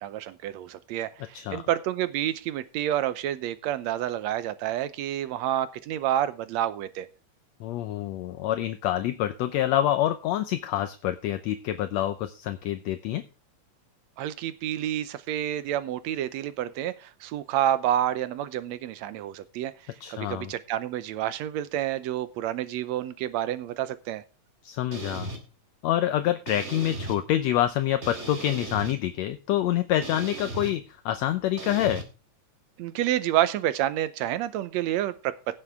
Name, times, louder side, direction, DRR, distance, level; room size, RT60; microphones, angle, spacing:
voice 1, 0.0-7.1 14.2-19.7 20.1-24.2 32.8-35.3, right 12 dB, 75° right, 14 dB, 1.9 m, -29 dB
voice 2, 7.6-13.2 20.0-20.5 24.6-25.3 25.8-32.0, left 12 dB, 75° left, 10 dB, 1.8 m, -27 dB
sound 1, 24.9-25.4 26.5-27.2 28.0-29.0 30.0-30.7 31.6-32.0, right 2 dB, 25° right, 1.9 m, -36 dB
17.0 x 7.9 x 3.6 m, 0.32 s
omnidirectional pair, 3.4 m